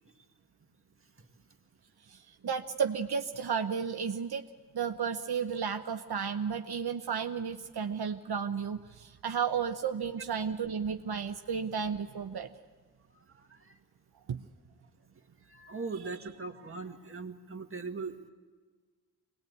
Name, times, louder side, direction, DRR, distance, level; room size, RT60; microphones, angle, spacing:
voice 1, 2.1-4.5 4.7-12.5 14.3-14.5, right 6 dB, 75° right, 6 dB, 0.8 m, -33 dB
voice 2, 13.3-13.7 15.5-18.2, right 4 dB, 35° right, 4 dB, 1.7 m, -40 dB
24.5 x 19.5 x 9.3 m, 1.5 s
wide cardioid pair, 70°, 38 cm